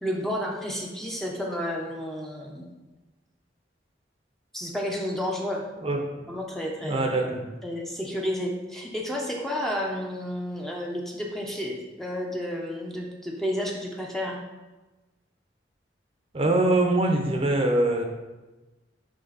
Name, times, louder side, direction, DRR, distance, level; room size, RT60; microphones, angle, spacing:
voice 1, 0.0-2.7 4.5-5.6 6.3-7.1 7.6-14.4, equal, ahead, -1 dB, 0.7 m, -31 dB
voice 2, 5.8-6.2 6.8-7.4 16.3-18.1, right 2 dB, 30° right, 2 dB, 0.7 m, -23 dB
8.9 x 3.3 x 4.0 m, 1.1 s
head